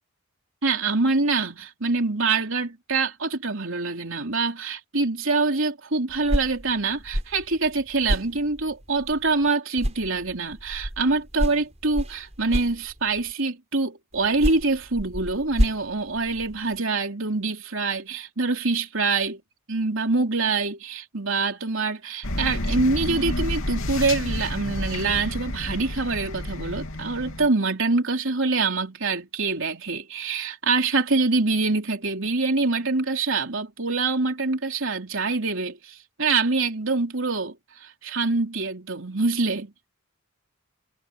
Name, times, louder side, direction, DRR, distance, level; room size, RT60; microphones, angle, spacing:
voice 1, 0.6-19.4 19.7-37.6 37.8-39.7, right 3 dB, 65° right, 3.6 m, -25 dB
sound 1, 6.1-9.5 9.8-13.3 14.1-16.8, equal, 30° right, 6.9 m, -30 dB
sound 2, 22.2-27.5, left 1 dB, 70° left, 3.1 m, -30 dB
head